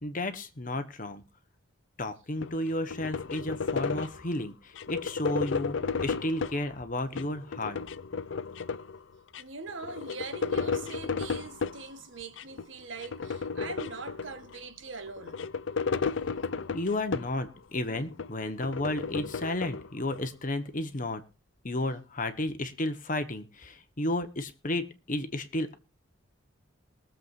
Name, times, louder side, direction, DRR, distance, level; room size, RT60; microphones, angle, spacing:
voice 1, 0.0-1.2 2.0-7.8 16.7-21.2 21.6-25.7, left 1 dB, 40° left, 1.4 m, -32 dB
sound 1, 2.4-4.3 4.8-6.6 7.0-9.0 9.3-9.4 9.7-11.8 12.4-12.7 13.0-14.6 15.1-17.5 17.9-20.2, left 5 dB, 65° left, 0.5 m, -33 dB
voice 2, 9.4-15.5, right 3 dB, 65° right, 1.4 m, -42 dB
23.0 x 7.6 x 2.7 m
head